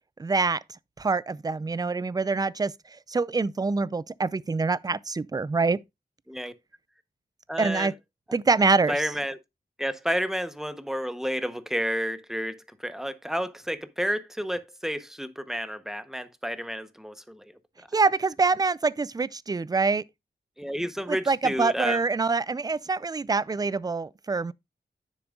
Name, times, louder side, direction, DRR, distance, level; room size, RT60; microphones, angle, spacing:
voice 1, 0.2-0.6 1.0-2.7 3.1-5.8 7.6-7.9 8.3-9.1 17.9-20.0 21.1-24.5, right 4 dB, 20° right, 0.3 m, -25 dB
voice 2, 7.5-7.9 8.9-9.4 9.8-17.5 20.6-22.0, equal, ahead, 0.8 m, -31 dB
10.0 x 6.9 x 2.3 m
wide cardioid pair, 100°, 18 cm